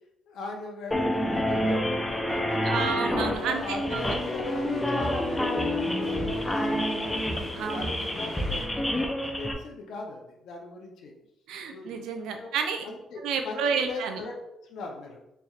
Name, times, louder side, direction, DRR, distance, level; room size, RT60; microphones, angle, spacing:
voice 1, 0.3-2.9 3.3-7.2 7.7-11.2 11.7-12.1 12.4-12.5 12.8-13.6 13.9-15.2, left 3 dB, 75° left, 1 dB, 0.7 m, -39 dB
sound 1, 0.9-9.5, left 1 dB, 10° left, 0.6 m, -28 dB
voice 2, 2.6-4.2 7.6-7.9 11.5-12.8 13.2-14.2, right 6 dB, 90° right, 5 dB, 0.5 m, -30 dB
sound 2, 3.3-8.7, left 2 dB, 50° left, 1.2 m, -42 dB
4.1 x 3.3 x 2.4 m, 0.84 s
cardioid pair, 90°, 0 cm